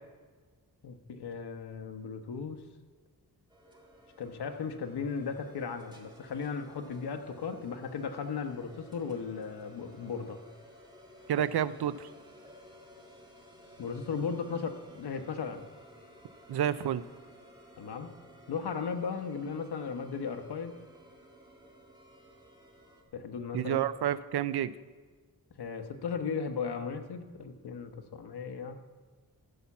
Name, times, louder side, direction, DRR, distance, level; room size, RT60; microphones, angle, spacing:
voice 1, 0.8-2.6 4.2-10.4 13.8-15.6 17.8-18.1 18.5-20.7 23.1-23.8 25.6-28.8, left 5 dB, 85° left, 7 dB, 1.1 m, -36 dB
sound 1, 3.5-23.0, equal, 10° right, 1.9 m, -55 dB
voice 2, 11.3-12.1 16.5-17.0 23.5-24.7, right 10 dB, 80° right, 16 dB, 0.6 m, -29 dB
13.0 x 5.6 x 7.2 m, 1.4 s
wide cardioid pair, 100°, 38 cm